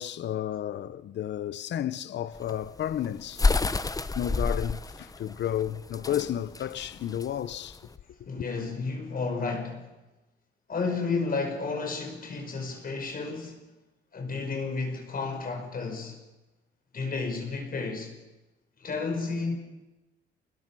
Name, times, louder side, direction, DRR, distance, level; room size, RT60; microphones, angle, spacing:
voice 1, 0.0-3.6 4.1-7.8 8.4-8.5, left 11 dB, 60° left, 0.9 m, -32 dB
sound 1, 2.3-7.9, left 3 dB, 20° left, 0.9 m, -29 dB
voice 2, 8.3-9.9 10.7-13.6 14.1-16.2 16.9-18.2 18.8-19.5, left 4 dB, 45° left, 5.3 m, -32 dB
26.5 x 21.0 x 6.2 m
cardioid pair, 90°, 20 cm